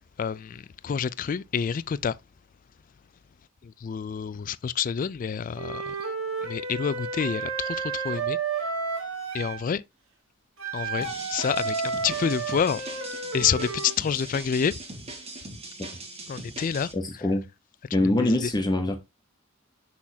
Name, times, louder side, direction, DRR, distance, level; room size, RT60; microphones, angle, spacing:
voice 1, 0.2-2.2 3.6-6.0 6.4-8.4 9.3-9.8 10.7-13.0 13.3-14.8 16.3-16.9 18.0-18.5, left 7 dB, 40° left, 0.3 m, -28 dB
Wind instrument woodwind instrument, 5.6-9.6 10.6-14.0, right 4 dB, 75° right, 1.6 m, -31 dB
sound 1, 11.0-16.9, right 2 dB, 30° right, 1.6 m, -40 dB
voice 2, 16.9-17.4 17.9-19.0, left 1 dB, 20° left, 0.8 m, -24 dB
6.1 x 6.1 x 2.7 m
head